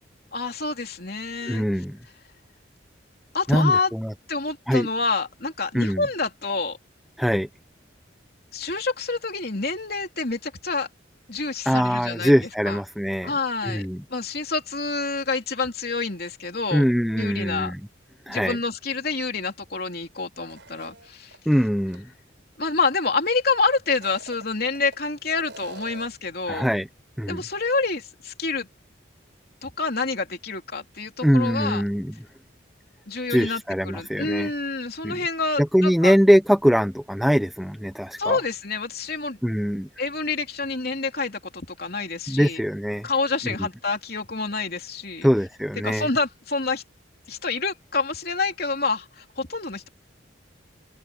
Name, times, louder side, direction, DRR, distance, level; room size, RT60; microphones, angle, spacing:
voice 1, 0.3-1.6 3.3-3.9 4.3-6.8 8.5-10.9 11.3-12.3 12.7-12.8 13.2-13.8 14.1-16.8 17.2-17.7 18.3-21.4 22.6-26.7 27.3-28.7 29.6-31.8 33.1-36.2 38.2-39.4 40.0-42.6 43.0-45.3 45.8-46.8 47.3-49.9, left 4 dB, 50° left, 3.4 m, -27 dB
voice 2, 1.4-2.0 3.5-3.7 4.0-4.1 4.7-4.9 5.7-6.1 7.2-7.5 11.7-13.3 13.6-14.0 16.7-17.8 18.3-18.6 21.5-22.1 26.5-26.9 27.2-27.4 31.2-32.1 33.3-34.5 35.0-35.2 35.7-38.4 39.4-39.9 42.3-43.1 43.4-43.7 45.2-46.1, equal, ahead, 0.7 m, -22 dB
sound 1, 20.5-21.5 21.9-22.0 23.8-25.0 25.4-26.3, right 2 dB, 65° right, 7.5 m, -44 dB
head